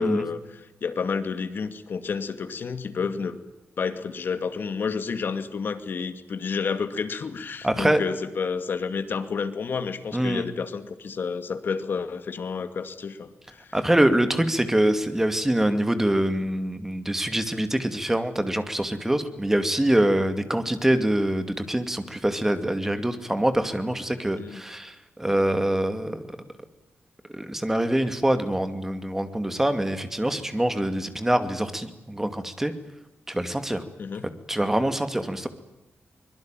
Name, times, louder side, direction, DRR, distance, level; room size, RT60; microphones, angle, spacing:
voice 1, 0.0-3.4 3.8-13.8 24.4-24.6 34.0-34.3, left 5 dB, 55° left, 10 dB, 2.4 m, -30 dB
voice 2, 7.6-8.0 10.1-10.4 13.7-26.3 27.3-32.7 33.3-33.8 34.5-35.5, right 1 dB, 10° right, 9 dB, 2.4 m, -24 dB
24.5 x 22.0 x 9.2 m, 1.0 s
wide cardioid pair, 150°, 4 cm